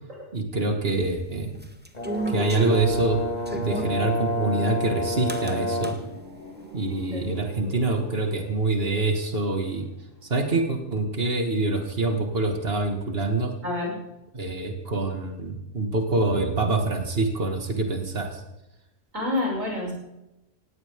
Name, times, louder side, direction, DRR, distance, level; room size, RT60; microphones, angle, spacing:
voice 1, 0.3-1.6 2.3-3.2 3.5-6.0 6.7-9.9 10.3-13.5 14.3-18.4, right 3 dB, 50° right, 4 dB, 2.5 m, -25 dB
sound 1, 1.0-4.0 5.3-6.0, right 1 dB, 10° right, 1.4 m, -33 dB
Brass instrument, 1.9-6.1, left 2 dB, 30° left, 2.0 m, -30 dB
sound 2, 2.7-12.4 12.7-12.9, equal, 75° left, 4.9 m, -44 dB
voice 2, 13.6-13.9 19.1-19.9, left 2 dB, 80° right, -2 dB, 7.4 m, -28 dB
18.5 x 17.0 x 3.8 m, 0.92 s
omnidirectional pair, 1.3 m